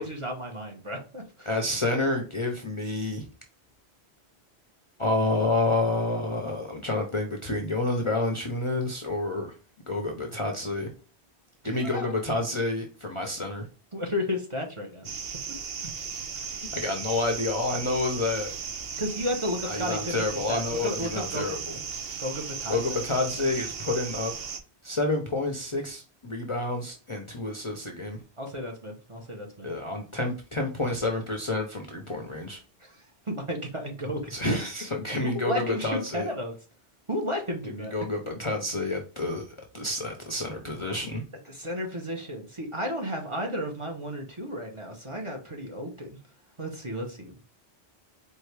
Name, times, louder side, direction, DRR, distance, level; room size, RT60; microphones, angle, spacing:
voice 1, 0.0-1.5 11.7-12.1 13.9-15.1 16.3-16.5 19.0-21.6 22.2-23.0 28.4-29.7 32.8-33.0 33.3-34.3 35.2-36.6 37.1-37.9 41.5-46.2 46.6-47.4, left 1 dB, 30° right, 1 dB, 0.9 m, -33 dB
voice 2, 1.5-3.3 5.0-9.6 9.9-10.9 11.6-13.7 15.8-15.9 16.7-18.5 19.6-21.8 22.7-24.3 24.8-28.2 29.6-32.6 34.3-36.3 37.6-41.2, left 2 dB, 35° left, 2 dB, 0.6 m, -29 dB
sound 1, 15.0-24.6, right 6 dB, 65° right, 0.9 m, -36 dB
4.6 x 2.6 x 3.2 m, 0.35 s
omnidirectional pair, 1.1 m